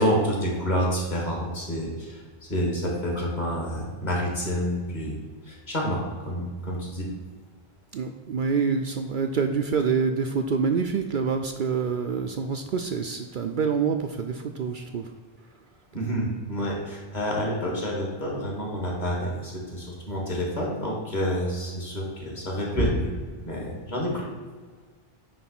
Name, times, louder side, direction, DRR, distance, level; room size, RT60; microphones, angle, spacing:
voice 1, 0.0-2.2 2.5-5.2 5.5-6.0 6.2-7.1 15.9-23.1 23.4-24.2, equal, 40° left, -2 dB, 2.2 m, -28 dB
voice 2, 7.9-15.1, right 5 dB, 60° right, 6 dB, 0.6 m, -26 dB
9.3 x 3.5 x 5.9 m, 1.5 s
omnidirectional pair, 1.1 m